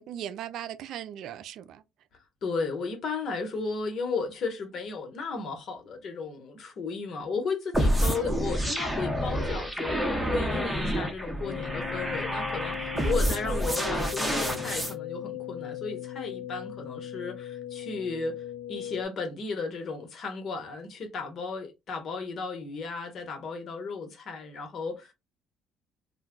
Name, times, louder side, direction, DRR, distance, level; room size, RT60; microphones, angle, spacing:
voice 1, 0.0-1.8 8.0-8.5 12.9-13.3, right 11 dB, 70° right, 0.3 m, -39 dB
voice 2, 2.4-25.1, left 4 dB, 55° left, 1.1 m, -34 dB
sound 1, 7.7-14.9, equal, 5° right, 0.8 m, -28 dB
sound 2, 11.4-19.0, left 12 dB, 75° left, 0.3 m, -38 dB
2.2 x 2.2 x 3.6 m
supercardioid pair, 80°, 0 cm